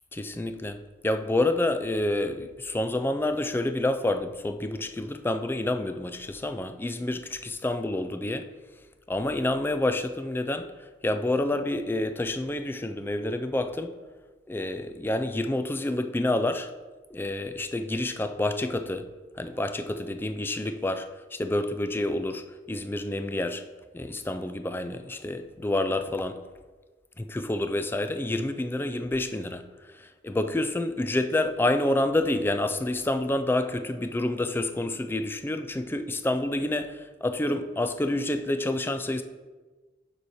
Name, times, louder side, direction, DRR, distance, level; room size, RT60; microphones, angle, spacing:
voice 1, 0.1-8.5 9.1-10.7 11.0-14.0 14.5-16.7 17.1-19.1 19.4-23.7 23.9-26.4 27.2-29.7 29.9-39.2, left 1 dB, 10° left, 0.3 m, -28 dB
6.9 x 4.5 x 4.8 m
head